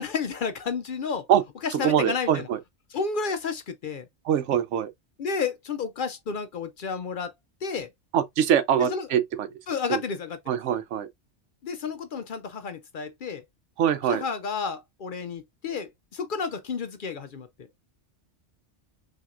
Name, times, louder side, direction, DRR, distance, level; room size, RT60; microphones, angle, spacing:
voice 1, 0.0-1.3 1.8-2.5 2.9-4.1 5.2-7.3 7.6-7.9 8.9-9.1 9.7-10.4 11.6-13.4 14.1-17.5, left 5 dB, 55° left, 0.6 m, -31 dB
voice 2, 1.7-2.6 4.2-4.9 8.1-9.5 9.9-10.0 10.5-11.1 13.8-14.2, right 9 dB, 85° right, 1.0 m, -23 dB
5.9 x 2.8 x 2.4 m
omnidirectional pair, 1.2 m